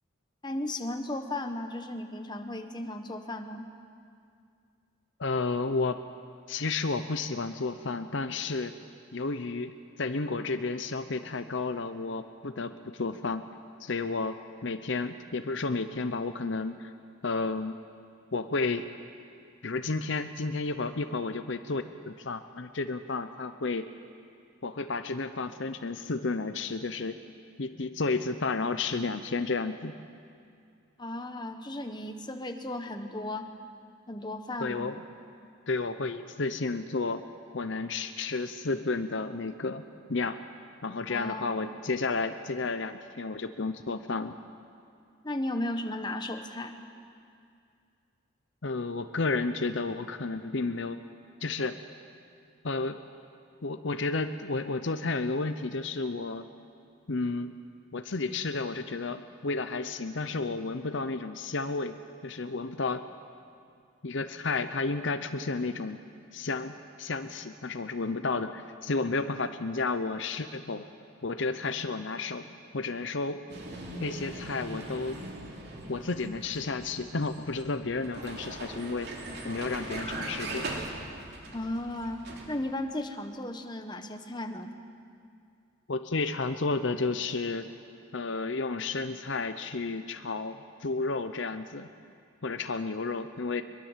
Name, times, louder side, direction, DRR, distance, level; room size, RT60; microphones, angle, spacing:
voice 1, 0.4-3.7 31.0-33.5 34.1-35.0 41.1-41.7 45.2-46.7 81.5-84.7, left 1 dB, 20° left, 6 dB, 1.3 m, -35 dB
voice 2, 5.2-6.0 6.5-8.7 9.1-9.7 10.0-13.4 13.8-16.9 17.2-17.8 18.3-18.8 19.6-23.9 24.6-27.2 27.6-30.0 34.6-35.0 35.7-37.3 37.5-39.8 40.1-40.4 40.8-44.4 48.6-51.0 51.4-51.8 52.6-53.0 53.6-56.5 57.1-57.5 57.9-63.0 64.0-66.0 66.3-70.9 71.2-72.5 72.7-73.4 74.0-75.2 75.9-79.1 79.4-80.7 85.9-87.7 88.1-91.9 92.4-93.6, left 3 dB, 60° left, 10 dB, 0.8 m, -32 dB
Vehicle, 73.5-82.6, right 2 dB, 50° right, 3.3 m, -40 dB
23.5 x 22.5 x 7.5 m, 2.4 s
head